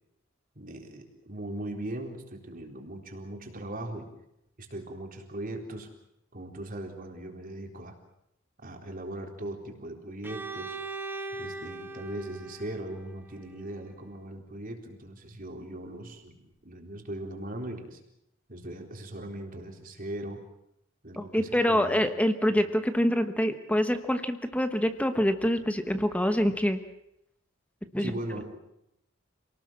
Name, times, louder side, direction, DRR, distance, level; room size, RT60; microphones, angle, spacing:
voice 1, 0.6-4.1 4.6-5.9 6.3-8.0 8.6-10.8 11.3-18.0 18.5-20.4 21.0-22.1 22.5-22.6 28.0-28.6, right 1 dB, 45° right, 3 dB, 4.1 m, -39 dB
Bowed string instrument, 10.2-14.1, right 3 dB, 10° right, 1.4 m, -40 dB
voice 2, 21.2-26.8 27.9-28.1, equal, 5° left, 8 dB, 1.1 m, -26 dB
27.5 x 19.0 x 7.5 m, 0.81 s
head